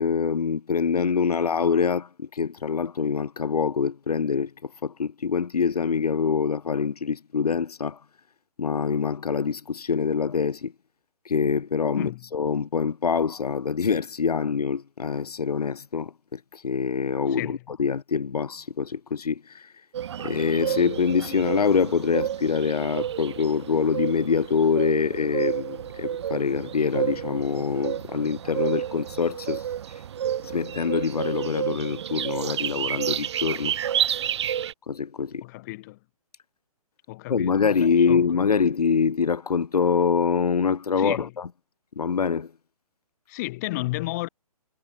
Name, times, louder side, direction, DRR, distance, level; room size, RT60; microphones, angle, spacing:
voice 1, 0.0-8.0 8.6-10.7 11.2-19.7 20.2-29.7 30.4-33.8 34.9-35.4 37.3-41.5 42.0-42.5, left 6 dB, 80° left, 1.5 m, -25 dB
voice 2, 17.3-17.6 35.4-36.0 37.1-37.8 38.1-38.3 41.0-41.3 43.3-44.3, left 20 dB, 30° left, 3.8 m, -32 dB
sound 1, 19.9-34.7, right 9 dB, 45° right, 1.2 m, -30 dB
hypercardioid pair, 155°, 19 cm